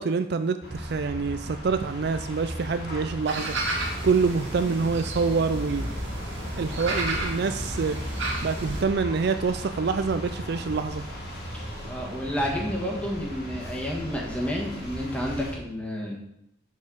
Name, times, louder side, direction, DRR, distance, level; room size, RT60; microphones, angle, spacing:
voice 1, 0.0-3.5 4.0-5.9 6.6-8.0 8.4-11.0, right 4 dB, 55° right, 9 dB, 0.4 m, -26 dB
sound 1, 0.6-15.5, equal, 50° left, 2.0 m, -36 dB
sound 2, 3.3-8.8, right 2 dB, 70° right, 2.0 m, -33 dB
voice 2, 11.9-16.2, equal, 5° left, -2 dB, 1.5 m, -30 dB
6.4 x 5.4 x 6.3 m, 0.80 s
head